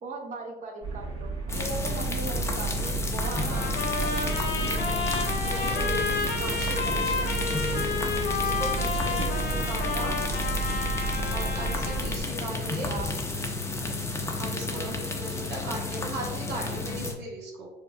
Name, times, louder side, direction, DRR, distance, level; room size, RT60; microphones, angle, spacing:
voice 1, 0.0-3.8 5.6-5.9 12.9-13.1 14.7-15.0, right 3 dB, 50° right, 1 dB, 0.8 m, -38 dB
sound 1, 0.8-12.2, right 4 dB, 30° right, 1.5 m, -33 dB
sound 2, 1.5-17.1, left 3 dB, 15° left, 0.5 m, -32 dB
Trumpet, 3.2-12.1, left 4 dB, 70° left, 0.8 m, -31 dB
voice 2, 3.3-3.7 4.0-7.8 8.4-10.2 11.3-12.9 14.4-17.7, right 1 dB, 80° right, -4 dB, 1.0 m, -38 dB
4.5 x 2.3 x 2.4 m, 0.99 s
cardioid pair, 110°, 17 cm